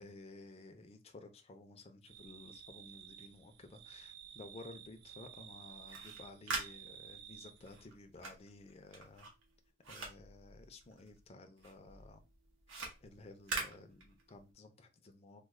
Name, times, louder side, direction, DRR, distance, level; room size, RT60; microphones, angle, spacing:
voice 1, 0.0-9.3 9.9-12.2 12.7-15.4, left 2 dB, 30° left, 6 dB, 0.4 m, -54 dB
sound 1, 2.0-7.9, right 9 dB, 60° right, 0.4 m, -54 dB
sound 2, 5.7-11.3 11.6-14.5, right 3 dB, 80° right, 1.0 m, -44 dB
3.1 x 2.1 x 3.6 m, 0.29 s
head